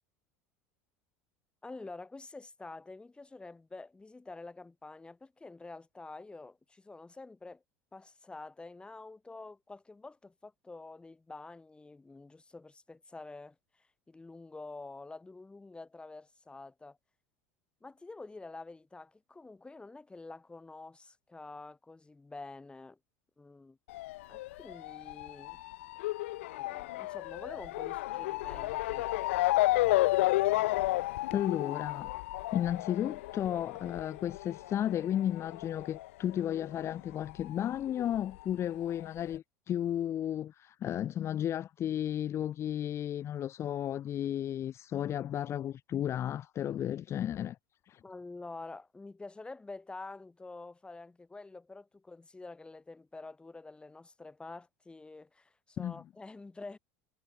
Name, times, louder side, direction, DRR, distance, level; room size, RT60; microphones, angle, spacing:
voice 1, 1.6-7.6 7.9-17.0 17.8-23.0 23.4-23.8 24.3-25.6 26.5-29.1 48.0-56.8, left 3 dB, 15° left, 7.0 m, -48 dB
Motor vehicle (road) / Siren, 23.9-36.9 37.2-38.4 39.0-39.1 39.3-39.4, left 18 dB, 70° left, 0.8 m, -32 dB
voice 2, 31.3-32.1 32.5-47.6 47.9-48.0 55.8-56.0, left 10 dB, 40° left, 0.8 m, -33 dB
hypercardioid pair, 80°, 7 cm